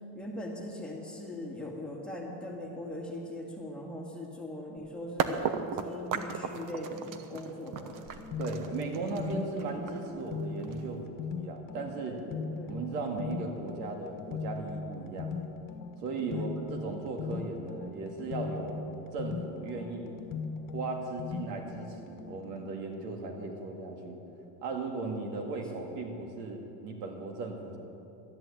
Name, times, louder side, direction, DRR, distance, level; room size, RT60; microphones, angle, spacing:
voice 1, 0.1-5.4 5.7-8.0 12.0-12.8 15.1-15.3 16.3-16.5 19.7-20.2, left 1 dB, ahead, -3 dB, 2.2 m, -41 dB
sound 1, 5.2-11.0, right 7 dB, 45° right, 1.0 m, -35 dB
sound 2, 7.8-22.7, left 4 dB, 40° left, 1.4 m, -39 dB
voice 2, 8.4-12.2 12.7-15.3 16.0-18.8 19.1-20.0 20.7-24.2 24.6-27.8, right 3 dB, 80° right, 3 dB, 2.2 m, -37 dB
13.0 x 10.5 x 8.1 m, 2.9 s
supercardioid pair, 125°, 47 cm